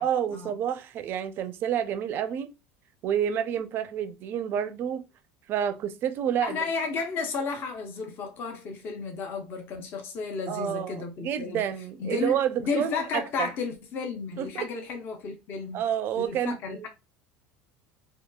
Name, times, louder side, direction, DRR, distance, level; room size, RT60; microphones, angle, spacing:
voice 1, 0.0-2.5 3.0-5.0 5.5-6.7 10.5-13.5 14.4-14.7 15.7-16.9, right 9 dB, 45° right, 0.4 m, -29 dB
voice 2, 6.4-11.6 12.0-15.8 16.1-16.9, left 4 dB, 45° left, 0.6 m, -33 dB
2.8 x 2.2 x 2.2 m
supercardioid pair, 120°, 5 cm